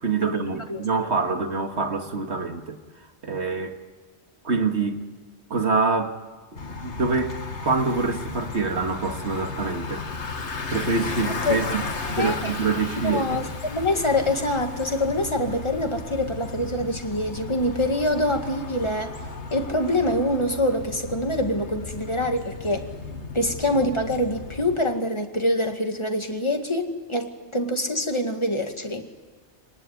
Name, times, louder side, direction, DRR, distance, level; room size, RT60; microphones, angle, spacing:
voice 1, 0.0-2.8 3.2-3.8 4.4-5.0 5.5-6.2 6.5-10.0 10.7-13.4, right 4 dB, 75° right, 5 dB, 2.3 m, -26 dB
Bicycle, 6.6-24.8, left 4 dB, 80° left, 2.0 m, -35 dB
voice 2, 12.2-12.5 13.0-19.1 19.5-22.9 23.3-29.1, left 1 dB, 25° left, 4 dB, 2.2 m, -25 dB
26.5 x 19.0 x 9.6 m, 1.4 s
omnidirectional pair, 1.1 m